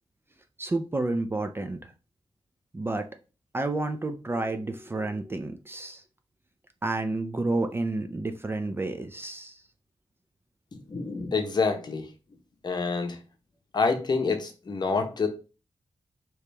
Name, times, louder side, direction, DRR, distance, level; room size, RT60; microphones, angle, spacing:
voice 1, 0.6-1.8 2.7-3.1 3.5-6.0 6.8-9.5 11.2-11.3, right 2 dB, 25° right, 0.4 m, -30 dB
voice 2, 10.9-12.1 12.6-13.2 13.7-15.3, left 4 dB, 45° left, 0.9 m, -27 dB
5.0 x 3.0 x 3.3 m
wide cardioid pair, 140°, 10 cm